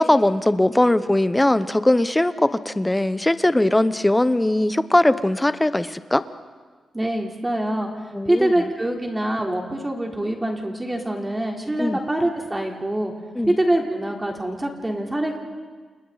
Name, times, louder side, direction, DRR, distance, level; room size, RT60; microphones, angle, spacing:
voice 1, 0.0-6.2 8.1-8.5 11.8-12.0 13.3-13.6, left 1 dB, 10° left, 12 dB, 0.9 m, -20 dB
voice 2, 6.9-7.9 8.3-13.1 13.4-15.4, right 1 dB, 15° right, 0 dB, 3.6 m, -24 dB
30.0 x 28.5 x 4.1 m, 1.5 s
cardioid pair, 100°, 0 cm